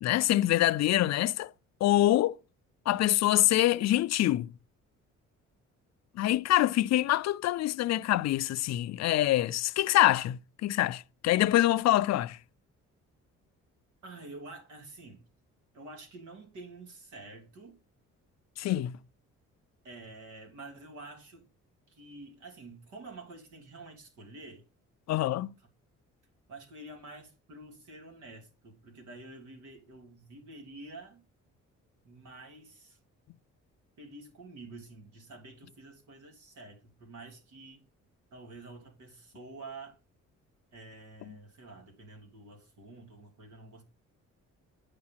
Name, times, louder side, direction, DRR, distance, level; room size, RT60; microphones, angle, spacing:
voice 1, 0.0-1.5 1.8-2.4 2.9-4.5 6.2-12.4 18.6-18.9 25.1-25.5, left 14 dB, 60° left, 0.5 m, -25 dB
voice 2, 14.0-15.3 15.7-17.8 19.8-21.5 21.9-24.6 25.6-25.7 26.5-31.2 32.0-33.0 34.0-37.9 38.3-40.0 40.7-43.8, right 2 dB, 75° right, 3.2 m, -48 dB
9.6 x 5.2 x 5.7 m
cardioid pair, 90°, 30 cm